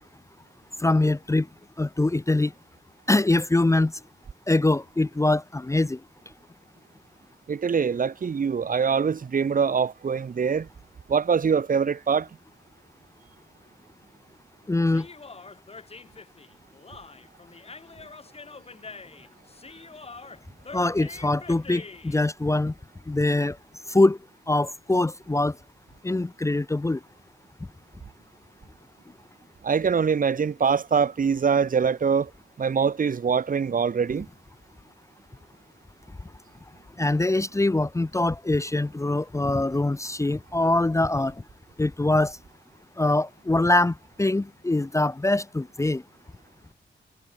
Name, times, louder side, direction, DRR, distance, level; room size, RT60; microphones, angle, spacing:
voice 1, 0.8-1.5 1.8-2.5 3.1-3.9 4.5-6.0 14.7-15.1 20.7-22.7 23.1-23.6 23.9-24.2 24.5-25.5 26.0-27.0 37.0-41.3 41.8-42.4 43.0-46.0, left 2 dB, 15° left, 0.7 m, -23 dB
voice 2, 7.5-10.7 11.1-12.3 29.6-32.3 32.6-34.3, right 6 dB, 40° right, 1.0 m, -23 dB
Human voice, 14.9-22.2, left 4 dB, 30° left, 2.0 m, -44 dB
wide cardioid pair, 145°, 21 cm